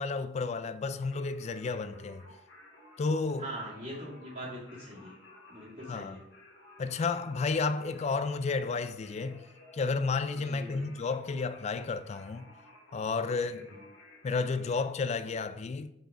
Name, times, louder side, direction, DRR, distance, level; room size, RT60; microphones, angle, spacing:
voice 1, 0.0-2.2 3.0-3.5 5.9-6.2 6.8-9.5 9.7-12.5 12.9-13.7 14.2-15.9, left 4 dB, 35° left, 0.3 m, -32 dB
Singing, 1.0-14.8, left 1 dB, 85° left, 1.4 m, -55 dB
voice 2, 3.4-5.1 5.5-6.2 10.4-10.9 13.5-13.6, right 1 dB, 45° right, 2.4 m, -42 dB
5.3 x 5.0 x 3.7 m
head